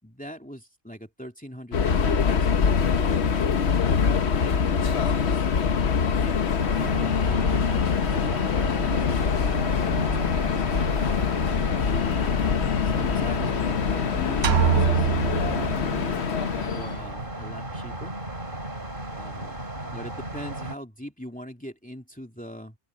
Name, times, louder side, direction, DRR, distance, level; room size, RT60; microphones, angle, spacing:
voice 1, 0.0-3.5 4.3-5.5 6.2-11.2 12.8-15.1 16.7-18.2 19.1-19.6 19.9-22.8, equal, 5° left, 2.8 m, -42 dB
Subway metro underground, 1.7-17.1, left 6 dB, 70° left, 1.3 m, -24 dB
sound 1, 6.6-20.7, right 1 dB, 50° right, 3.5 m, -34 dB
sound 2, 14.4-16.3, right 8 dB, 70° right, 1.0 m, -24 dB
open air
omnidirectional pair, 1.1 m